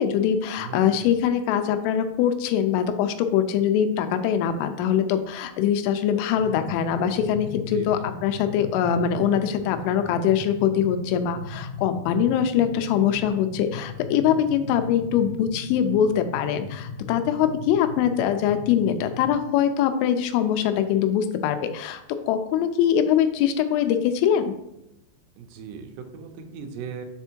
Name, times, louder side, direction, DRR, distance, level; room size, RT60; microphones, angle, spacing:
voice 1, 0.0-24.5, left 9 dB, 90° left, 8 dB, 3.1 m, -23 dB
voice 2, 0.6-1.1 7.5-8.1 25.4-27.1, right 6 dB, 80° right, 4 dB, 2.4 m, -39 dB
sound 1, 6.4-19.3, left 4 dB, 65° left, 1.5 m, -38 dB
7.1 x 3.4 x 4.5 m, 0.86 s
omnidirectional pair, 5.5 m